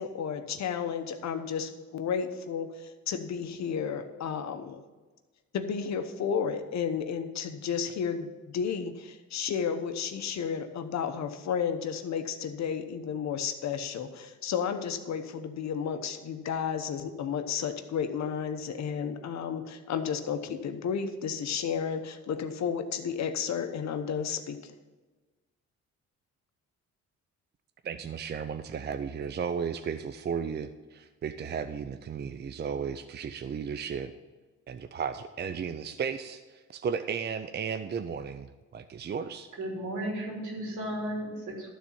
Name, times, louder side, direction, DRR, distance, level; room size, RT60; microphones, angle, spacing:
voice 1, 0.0-4.8 5.5-24.7, left 7 dB, 65° left, 8 dB, 1.0 m, -32 dB
voice 2, 27.8-34.1 34.7-39.5, right 6 dB, 35° right, 10 dB, 0.5 m, -34 dB
voice 3, 39.6-41.7, right 1 dB, 80° right, -2 dB, 3.4 m, -34 dB
12.5 x 4.1 x 7.2 m, 1.3 s
cardioid pair, 90°, 30 cm